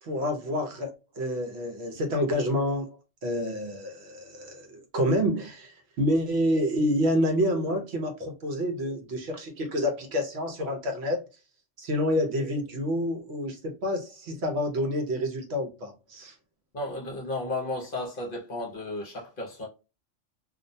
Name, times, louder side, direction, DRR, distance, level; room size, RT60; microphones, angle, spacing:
voice 1, 0.0-11.2 11.8-16.3, equal, 65° right, 0.9 m, -28 dB
voice 2, 16.7-19.7, left 2 dB, 55° left, 0.8 m, -33 dB
2.4 x 2.1 x 2.6 m
omnidirectional pair, 1.2 m